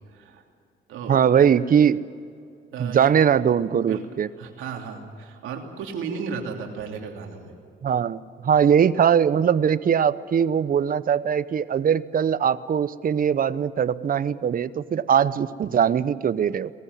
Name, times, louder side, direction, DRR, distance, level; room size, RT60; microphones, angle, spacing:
voice 1, 0.1-0.4 0.9-1.5 2.7-3.1 3.8-4.0 4.4-7.5 15.1-15.2, right 6 dB, 85° right, 2 dB, 3.0 m, -34 dB
voice 2, 1.1-2.0 2.8-4.3 7.8-16.7, right 8 dB, 45° right, 16 dB, 0.8 m, -21 dB
19.5 x 15.0 x 9.6 m, 2.4 s
cardioid pair, 90°, 20 cm